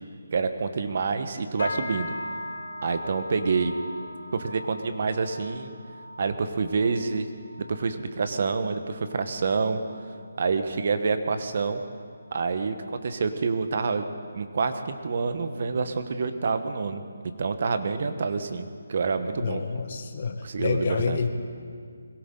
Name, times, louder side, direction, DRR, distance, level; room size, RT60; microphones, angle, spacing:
voice 1, 0.3-2.2 2.8-3.7 4.3-5.7 6.2-7.3 7.7-9.8 10.4-11.8 12.3-14.1 14.3-17.0 17.4-19.9 20.4-21.2, right 4 dB, 50° right, 9 dB, 1.2 m, -27 dB
sound 1, 1.6-11.1 11.4-11.9 12.3-12.6 13.2-13.3, left 1 dB, 80° left, 3.7 m, -40 dB
voice 2, 19.4-21.3, left 5 dB, 45° left, 4 dB, 1.4 m, -28 dB
22.0 x 17.0 x 3.8 m, 2.1 s
figure-of-eight pair, 160°, 0 cm